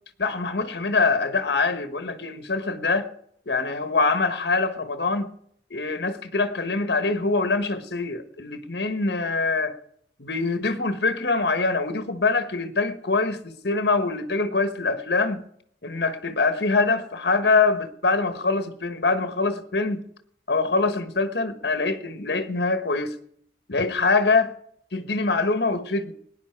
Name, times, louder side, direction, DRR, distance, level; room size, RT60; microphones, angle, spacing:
voice 1, 0.2-3.1 3.5-5.3 5.7-9.7 10.2-15.4 15.8-20.0 20.5-23.2 23.7-24.5 24.9-26.1, left 3 dB, 65° left, 1.2 m, -24 dB
18.0 x 10.0 x 4.6 m
head